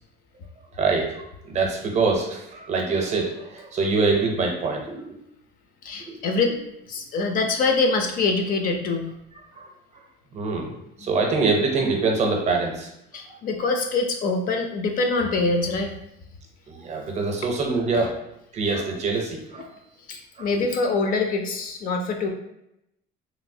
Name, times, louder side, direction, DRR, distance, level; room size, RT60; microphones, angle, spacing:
voice 1, 0.7-1.2 1.5-5.2 6.1-6.2 9.6-9.7 10.3-12.9 16.7-18.2 18.5-19.7 20.4-20.5, right 3 dB, 35° right, 1 dB, 0.6 m, -24 dB
voice 2, 5.8-6.6 6.9-9.1 11.0-11.1 13.1-15.9 20.1-22.3, left 3 dB, 45° left, 4 dB, 0.4 m, -24 dB
3.1 x 2.6 x 2.6 m, 0.82 s
cardioid pair, 155°, 20 cm